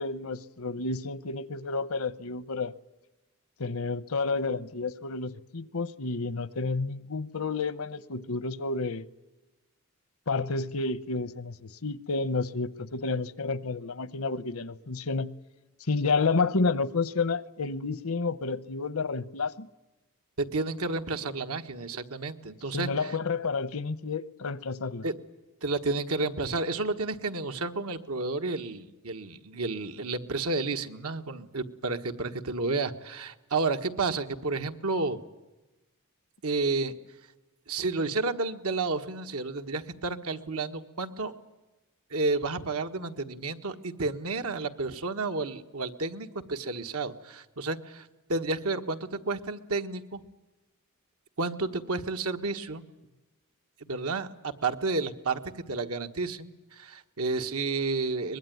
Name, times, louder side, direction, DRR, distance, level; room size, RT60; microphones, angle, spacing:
voice 1, 0.0-2.7 3.6-9.0 10.3-15.3 15.9-19.7 22.7-25.0, left 4 dB, 75° left, 0.9 m, -30 dB
voice 2, 20.4-23.1 25.0-25.1 25.6-35.2 36.4-36.9 37.7-41.3 42.1-50.2 51.4-52.8 53.9-55.4 55.7-58.4, right 3 dB, 90° right, 1.5 m, -31 dB
24.0 x 21.0 x 9.4 m
head